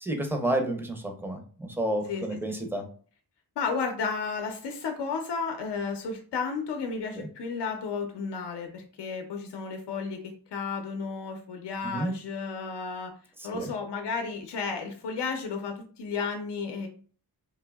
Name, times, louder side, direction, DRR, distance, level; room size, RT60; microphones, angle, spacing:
voice 1, 0.0-2.8 7.2-7.3 11.8-12.1 13.4-13.7, right 1 dB, 5° right, 4 dB, 0.5 m, -30 dB
voice 2, 2.1-2.6 3.6-13.1 13.4-16.9, left 5 dB, 90° left, 5 dB, 0.6 m, -33 dB
3.3 x 2.6 x 2.2 m, 0.43 s
wide cardioid pair, 115°, 40 cm